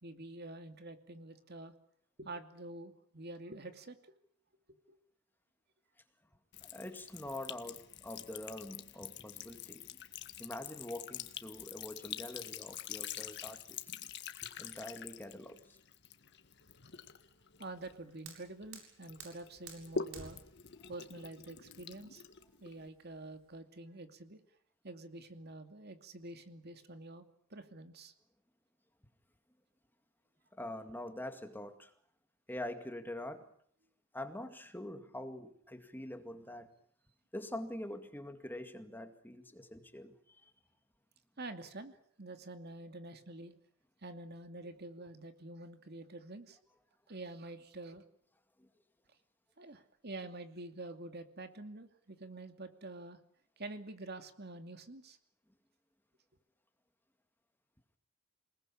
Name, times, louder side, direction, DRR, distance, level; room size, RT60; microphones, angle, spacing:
voice 1, 0.0-1.7 2.2-4.2 4.7-5.0 17.6-20.4 20.9-22.2 22.6-24.4 24.8-28.1 41.4-43.6 44.0-46.6 47.1-48.0 49.6-53.2 53.6-55.2, right 2 dB, 50° right, 8 dB, 2.6 m, -47 dB
Sink (filling or washing) / Trickle dribble, 6.5-18.7 19.0-22.9, left 7 dB, 55° left, 1.8 m, -46 dB
voice 2, 6.6-9.9 10.4-13.9 14.6-15.8 30.5-31.9 32.5-33.5 34.1-36.7 37.3-40.5 48.6-48.7, left 1 dB, 10° left, 8 dB, 2.1 m, -45 dB
Fire, 17.6-23.6, right 5 dB, 85° right, 7.6 m, -55 dB
28.0 x 20.0 x 8.6 m, 0.63 s
head